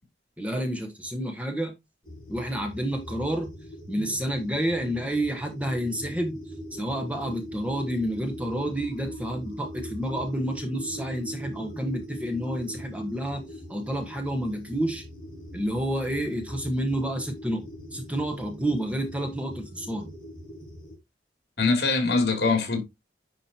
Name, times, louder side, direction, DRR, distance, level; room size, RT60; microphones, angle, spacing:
voice 1, 0.4-1.8 2.3-3.5 3.9-15.0 15.5-20.1, right 1 dB, 5° right, 1.3 m, -29 dB
sound 1, 2.0-21.0, left 1 dB, 25° left, 4.9 m, -44 dB
sound 2, 5.6-20.6, right 1 dB, 35° right, 2.1 m, -44 dB
voice 2, 21.6-22.8, left 3 dB, 60° left, 3.0 m, -23 dB
10.5 x 5.0 x 2.9 m
head